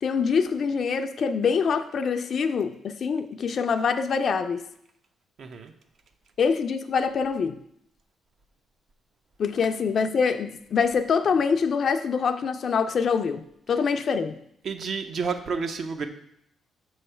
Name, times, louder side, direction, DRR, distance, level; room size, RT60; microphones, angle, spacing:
voice 1, 0.0-4.6 6.4-7.6 9.4-14.4, left 5 dB, 55° left, 8 dB, 0.4 m, -25 dB
voice 2, 5.4-5.7 14.6-16.1, right 5 dB, 55° right, 7 dB, 0.7 m, -30 dB
6.8 x 3.2 x 5.5 m, 0.73 s
cardioid pair, 90°, 0 cm